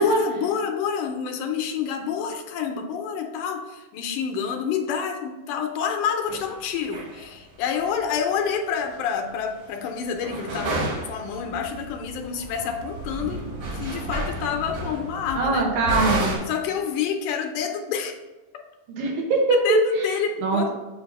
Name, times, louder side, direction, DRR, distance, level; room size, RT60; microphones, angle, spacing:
voice 1, 0.0-13.5 13.7-15.7 16.5-18.1 19.5-20.7, left 7 dB, 80° left, 4 dB, 2.1 m, -28 dB
sound 1, 6.3-6.4 6.9-7.3 7.7-8.0 8.9-9.0 9.7-9.8 10.0-16.4, right 1 dB, 70° right, 3.6 m, -31 dB
voice 2, 15.4-16.4 18.9-20.0 20.4-20.7, right 2 dB, 90° right, 0 dB, 2.8 m, -22 dB
7.8 x 2.6 x 5.2 m, 1.1 s
omnidirectional pair, 3.9 m